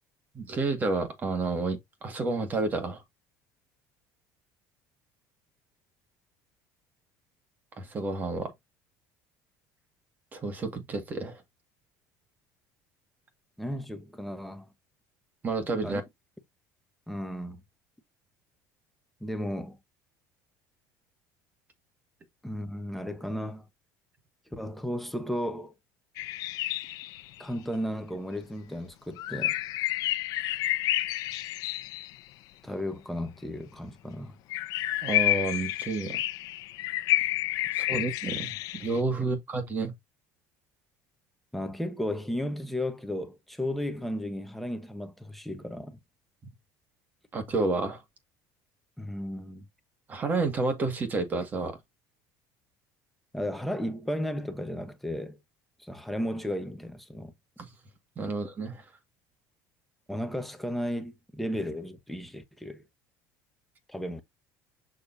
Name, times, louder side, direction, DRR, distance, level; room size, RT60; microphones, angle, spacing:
voice 1, 0.3-3.0 7.8-8.5 10.3-11.4 15.4-16.0 35.0-36.2 37.7-39.9 47.3-48.0 50.1-51.8 57.6-57.7 58.2-58.8, right 3 dB, 25° right, 1.8 m, -30 dB
voice 2, 13.6-14.7 15.8-16.0 17.1-17.6 19.2-19.8 22.4-23.6 24.5-25.7 27.4-29.6 32.6-34.4 37.9-38.1 39.2-39.3 41.5-46.0 49.0-49.7 53.3-55.4 55.8-57.3 60.1-62.8 63.9-64.2, equal, ahead, 0.9 m, -34 dB
sound 1, 26.2-27.4 29.2-32.2 34.5-39.0, left 16 dB, 55° left, 0.7 m, -30 dB
6.7 x 5.9 x 2.7 m
cardioid pair, 155°, 7 cm